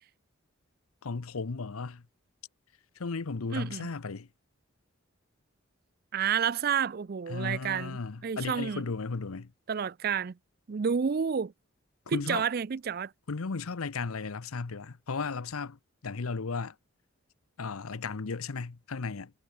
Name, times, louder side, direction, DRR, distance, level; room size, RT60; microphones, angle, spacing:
voice 1, 1.0-2.0 3.0-4.3 7.3-9.5 12.1-12.4 13.3-16.7 17.6-19.3, left 4 dB, 85° left, 0.8 m, -35 dB
voice 2, 3.5-3.9 6.1-8.0 8.2-8.8 9.7-10.3 10.7-11.5 12.1-13.1, right 7 dB, 45° right, 0.4 m, -30 dB
head